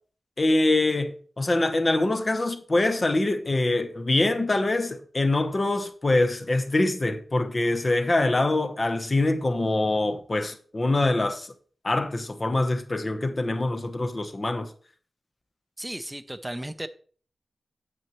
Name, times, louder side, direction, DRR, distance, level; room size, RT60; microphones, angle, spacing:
voice 1, 0.4-11.5 11.8-14.7, left 2 dB, 35° left, 0.8 m, -24 dB
voice 2, 15.8-16.9, right 1 dB, 10° right, 0.5 m, -35 dB
8.9 x 7.7 x 3.0 m
wide cardioid pair, 125°, 0 cm